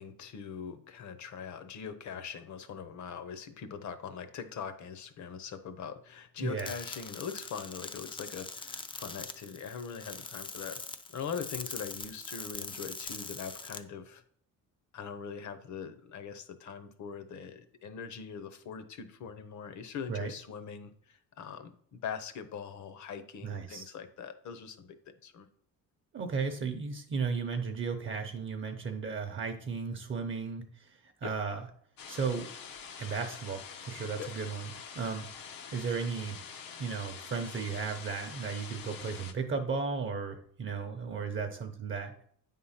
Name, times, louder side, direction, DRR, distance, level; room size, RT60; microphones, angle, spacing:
voice 1, 0.0-10.8 11.1-14.2 14.9-24.9 25.2-25.5 31.2-31.3 34.2-34.3, left 7 dB, 60° left, 10 dB, 0.9 m, -42 dB
voice 2, 6.4-6.7 20.1-20.3 23.4-23.9 26.1-31.6 32.1-32.5 33.0-35.3 35.7-36.4 36.8-42.1, right 5 dB, 35° right, 5 dB, 0.7 m, -35 dB
sound 1, 6.6-13.8, left 4 dB, 15° left, 0.3 m, -42 dB
sound 2, 32.0-39.3, left 7 dB, 90° left, 1.0 m, -46 dB
9.2 x 3.7 x 5.7 m, 0.64 s
cardioid pair, 165°, 33 cm